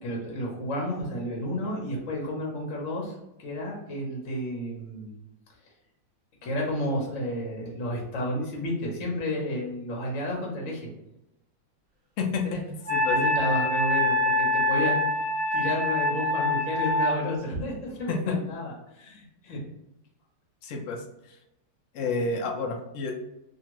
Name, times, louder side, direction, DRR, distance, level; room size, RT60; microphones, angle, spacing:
voice 1, 0.0-5.2 6.4-10.9 12.4-12.6 13.1-15.0 15.5-19.6, equal, 55° left, -2 dB, 1.0 m, -31 dB
voice 2, 12.2-12.6 12.9-13.2 18.1-18.4 20.6-21.0 21.9-23.1, left 4 dB, 90° left, 1 dB, 0.6 m, -29 dB
Wind instrument woodwind instrument, 12.9-17.1, left 2 dB, 50° right, 0.7 m, -25 dB
2.7 x 2.6 x 2.9 m, 0.86 s
omnidirectional pair, 2.0 m